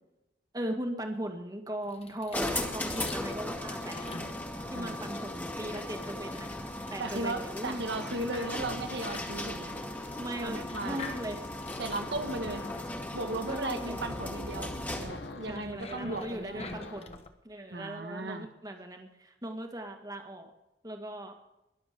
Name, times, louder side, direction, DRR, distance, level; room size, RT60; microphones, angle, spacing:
voice 1, 0.5-4.0 4.7-6.5 6.9-7.8 10.2-11.4 13.5-14.0 15.5-20.5 20.8-21.3, right 1 dB, 20° right, 4 dB, 1.8 m, -39 dB
sound 1, 1.8-17.3, left 3 dB, 35° left, 1.3 m, -48 dB
sound 2, 2.3-15.2, left 1 dB, 10° left, 1.9 m, -37 dB
voice 2, 4.7-5.1 7.0-9.8 10.4-11.0 11.8-12.7 13.1-16.7 17.7-18.5, right 2 dB, 75° right, 7 dB, 1.7 m, -36 dB
sound 3, 10.5-17.2, left 1 dB, 80° left, 1.4 m, -47 dB
22.0 x 7.7 x 5.2 m, 0.95 s
head